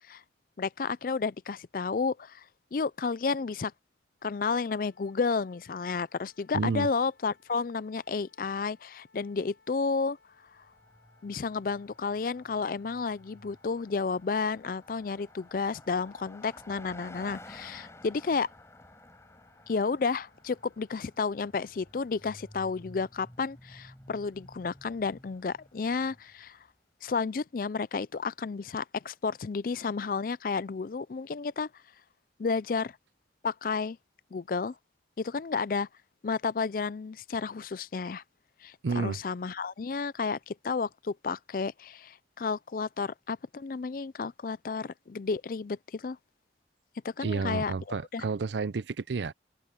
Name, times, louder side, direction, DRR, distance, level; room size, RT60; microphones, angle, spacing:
voice 1, 0.6-2.4 2.7-3.7 4.2-10.2 11.2-18.5 19.7-26.6 27.0-31.7 32.4-32.9 33.4-34.0 34.3-34.7 35.2-35.9 36.2-38.2 38.6-46.2 47.0-48.3, left 4 dB, 50° left, 0.4 m, -32 dB
sound 1, 4.2-22.6, left 3 dB, 80° left, 5.3 m, -65 dB
voice 2, 6.5-6.9 38.8-39.2 47.2-49.3, right 4 dB, 80° right, 0.5 m, -30 dB
Car passing by, 10.4-26.5, left 1 dB, 15° left, 4.8 m, -53 dB
open air
head